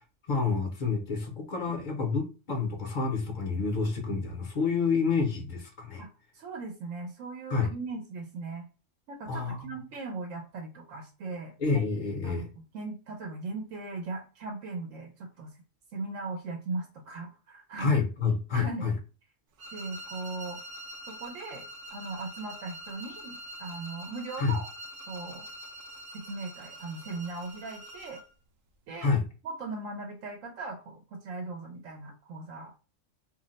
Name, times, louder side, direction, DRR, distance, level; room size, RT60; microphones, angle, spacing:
voice 1, 0.3-6.0 7.5-7.7 9.3-9.7 11.6-12.5 17.8-18.9 24.4-24.6 29.0-29.2, left 5 dB, 50° left, 3 dB, 0.7 m, -28 dB
voice 2, 6.0-8.6 9.1-11.5 12.2-12.5 12.7-15.5 15.9-18.0 18.5-18.9 19.7-20.6 21.1-24.7 25.1-25.4 26.1-28.2 28.9-29.1 29.4-32.7, right 3 dB, 80° right, 3 dB, 1.0 m, -38 dB
sound 1, 19.6-28.3, equal, 60° right, 0.6 m, -45 dB
2.5 x 2.1 x 3.9 m, 0.33 s
omnidirectional pair, 1.3 m